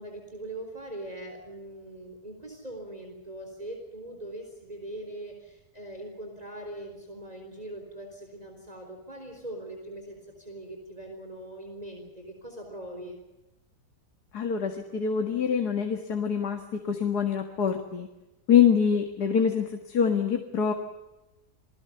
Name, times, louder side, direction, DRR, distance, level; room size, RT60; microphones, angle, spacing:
voice 1, 0.0-13.2, right 1 dB, 25° right, 2 dB, 4.1 m, -41 dB
voice 2, 14.3-18.1 18.5-20.7, left 7 dB, 75° left, 5 dB, 2.4 m, -25 dB
28.5 x 19.5 x 7.0 m, 0.97 s
omnidirectional pair, 1.7 m